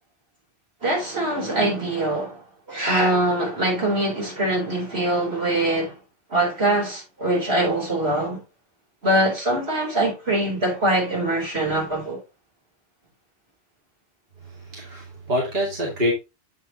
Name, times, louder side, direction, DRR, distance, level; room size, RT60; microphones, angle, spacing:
voice 1, 0.8-2.4 2.7-5.9 6.3-8.4 9.0-12.2, right 1 dB, 75° right, 4.1 m, -23 dB
voice 2, 14.7-16.1, equal, 50° right, 2.3 m, -25 dB
7.9 x 6.7 x 2.8 m
omnidirectional pair, 1.1 m